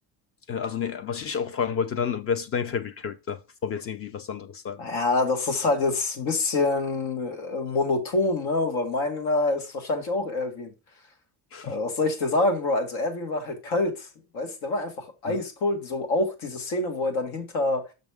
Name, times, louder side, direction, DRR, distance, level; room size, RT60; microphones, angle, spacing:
voice 1, 0.5-4.8 11.5-11.8 15.3-15.4, left 7 dB, 35° left, 0.7 m, -30 dB
voice 2, 4.8-10.7 11.6-14.1 14.3-17.8, left 2 dB, 75° left, 2.0 m, -26 dB
6.4 x 6.2 x 3.5 m
cardioid pair, 165°, 38 cm